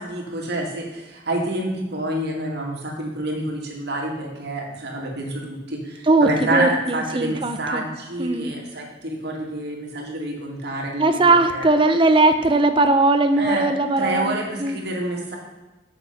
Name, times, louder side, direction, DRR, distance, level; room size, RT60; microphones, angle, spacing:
voice 1, 0.0-11.2 11.5-11.7 13.4-13.7 14.0-15.4, right 1 dB, 60° right, -1 dB, 2.4 m, -28 dB
voice 2, 6.0-7.8 8.2-8.5 11.0-14.8, right 2 dB, 25° right, 8 dB, 0.7 m, -19 dB
8.8 x 6.7 x 5.9 m, 1.1 s
head